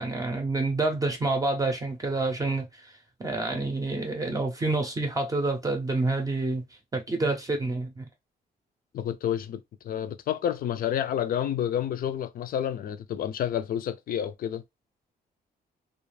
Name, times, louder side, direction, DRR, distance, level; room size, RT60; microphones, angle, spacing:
voice 1, 0.0-2.9 3.2-6.6 6.9-8.1, right 2 dB, 20° right, 0.6 m, -28 dB
voice 2, 8.9-14.6, left 10 dB, 60° left, 0.4 m, -29 dB
2.4 x 2.3 x 3.2 m
cardioid pair, 145°, 17 cm